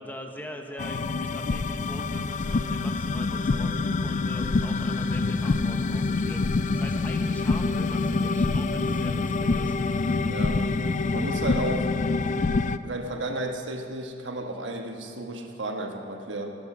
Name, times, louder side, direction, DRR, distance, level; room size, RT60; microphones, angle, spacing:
voice 1, 0.0-10.3, equal, 10° left, 3 dB, 0.9 m, -43 dB
sound 1, 0.8-12.8, left 3 dB, 40° left, 0.4 m, -26 dB
voice 2, 10.3-10.6 11.1-11.9 12.8-16.6, right 1 dB, 75° right, 3 dB, 1.3 m, -33 dB
17.0 x 9.6 x 6.1 m, 2.8 s
head